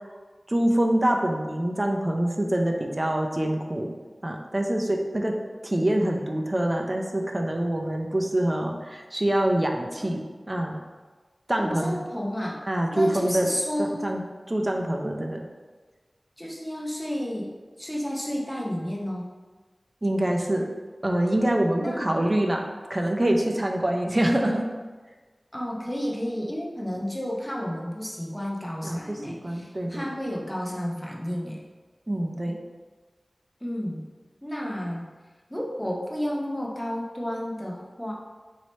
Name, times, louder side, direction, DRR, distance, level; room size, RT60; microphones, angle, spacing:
voice 1, 0.5-3.9 4.2-5.3 5.6-10.2 10.5-10.8 11.5-11.9 12.7-13.5 13.8-14.2 14.5-15.5 20.0-20.7 21.0-24.6 28.8-30.1 32.1-32.6, right 1 dB, 35° right, 2 dB, 0.5 m, -25 dB
voice 2, 11.6-12.6 12.9-14.0 16.4-19.3 21.8-22.2 25.5-31.6 33.6-34.0 34.4-35.1 35.5-38.1, equal, 10° left, -2 dB, 0.7 m, -31 dB
3.2 x 2.8 x 4.1 m, 1.3 s
wide cardioid pair, 50°, 0 cm